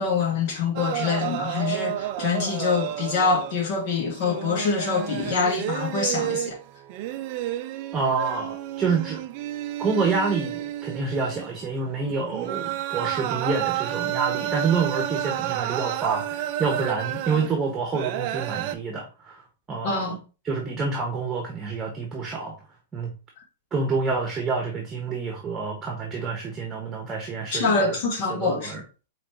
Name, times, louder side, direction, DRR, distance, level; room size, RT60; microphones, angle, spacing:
voice 1, 0.0-6.6 19.8-20.2 27.5-28.8, left 4 dB, 55° left, 1.8 m, -25 dB
sound 1, 0.8-3.9 4.1-18.8, right 13 dB, 50° right, 0.5 m, -31 dB
voice 2, 7.9-9.2 9.8-19.4 19.7-20.2 20.4-22.6 22.9-23.1 23.7-28.0 28.3-28.8, right 4 dB, 20° right, 1.1 m, -28 dB
5.0 x 3.2 x 3.0 m
hypercardioid pair, 115°, 0 cm